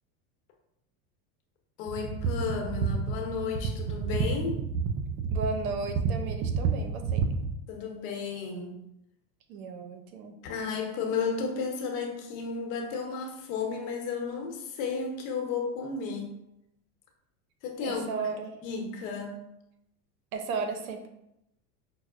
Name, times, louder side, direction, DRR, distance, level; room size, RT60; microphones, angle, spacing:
voice 1, 1.8-4.6 7.7-8.8 10.4-16.3 17.6-18.2 18.6-19.4, left 5 dB, 70° left, 3 dB, 0.9 m, -33 dB
sound 1, 1.9-7.5, right 5 dB, 45° right, 0.5 m, -30 dB
voice 2, 5.3-7.2 9.5-10.4 17.8-18.5 20.3-21.1, right 4 dB, 85° right, 6 dB, 0.7 m, -34 dB
5.4 x 2.0 x 2.4 m, 0.84 s
supercardioid pair, 110°, 42 cm